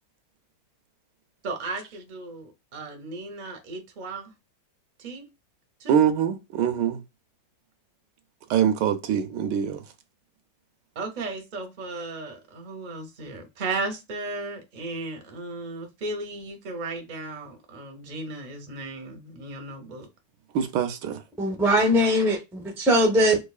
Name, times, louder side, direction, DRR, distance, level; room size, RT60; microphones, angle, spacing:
voice 1, 1.4-4.3 5.0-5.2 5.8-6.0 10.9-20.1, right 3 dB, 40° right, 0.6 m, -35 dB
voice 2, 5.9-7.0 8.5-9.8 20.5-21.2, right 9 dB, 75° right, 1.1 m, -24 dB
voice 3, 21.4-23.4, equal, 5° right, 0.4 m, -21 dB
4.6 x 2.6 x 2.3 m
omnidirectional pair, 2.0 m